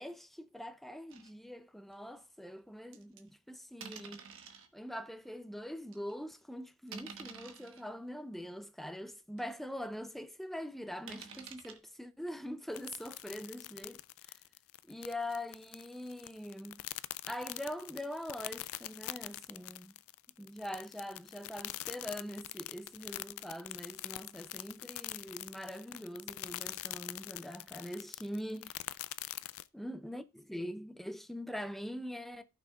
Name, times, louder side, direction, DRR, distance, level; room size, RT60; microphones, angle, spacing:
voice 1, 0.0-4.2 4.7-14.0 14.2-14.3 14.9-16.8 17.3-19.9 20.4-28.8 29.7-32.4, left 1 dB, ahead, 0.5 m, -43 dB
sound 1, 1.1-1.3 1.9-2.0 2.9-3.2 3.8-4.7 5.3-5.4 5.9-6.1 6.9-7.8 8.5-8.6 9.1-9.2 9.4-9.5 11.1-11.8, right 6 dB, 65° right, 1.2 m, -48 dB
sound 2, 12.7-29.7, left 16 dB, 65° left, 0.3 m, -44 dB
15.0 x 6.1 x 2.3 m
head